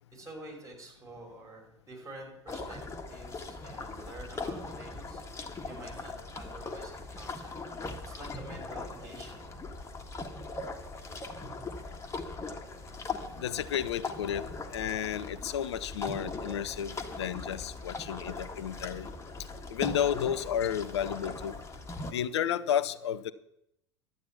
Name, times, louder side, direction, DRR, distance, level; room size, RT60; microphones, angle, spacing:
voice 1, 0.1-2.8 3.1-7.6 8.0-9.4, right 1 dB, 20° right, 0 dB, 5.1 m, -48 dB
sound 1, 2.5-22.1, left 3 dB, 20° left, 1.6 m, -40 dB
voice 2, 13.4-14.4 14.7-19.1 19.7-21.6 22.1-23.3, left 9 dB, 70° left, 16 dB, 0.6 m, -32 dB
12.0 x 8.6 x 7.1 m, 0.81 s
figure-of-eight pair, 75°, 15 cm